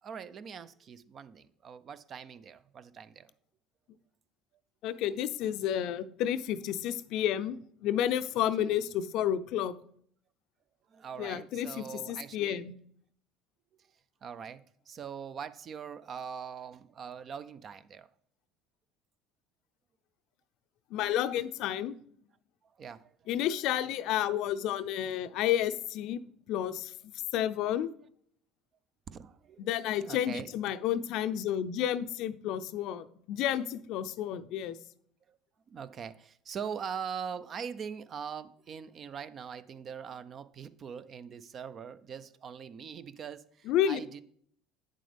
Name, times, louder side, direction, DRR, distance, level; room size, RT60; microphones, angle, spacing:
voice 1, 0.0-3.3 8.6-8.8 10.9-12.6 13.7-13.9 14.2-18.1 22.6-23.3 29.1-30.5 35.3-35.4 35.7-44.2, right 7 dB, 45° right, 0.5 m, -42 dB
voice 2, 4.8-9.7 11.2-12.8 20.9-21.9 23.3-26.2 26.5-26.9 27.3-27.9 29.6-34.8 43.7-44.0, left 10 dB, 65° left, 0.5 m, -31 dB
8.6 x 7.4 x 3.4 m
supercardioid pair, 85°, 0 cm